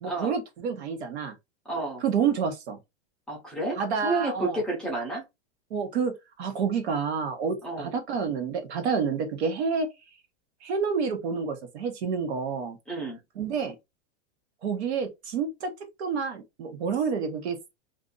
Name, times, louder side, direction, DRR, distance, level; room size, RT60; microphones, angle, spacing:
voice 1, 0.0-1.3 2.0-2.8 3.8-4.6 5.7-9.9 10.6-12.8 13.4-13.7 14.6-15.7 16.0-17.6, right 6 dB, 65° right, 1.1 m, -29 dB
voice 2, 1.7-2.0 3.3-5.2 7.6-7.9 12.9-13.2, right 2 dB, ahead, 0.6 m, -30 dB
2.6 x 2.5 x 3.8 m
supercardioid pair, 165°, 35 cm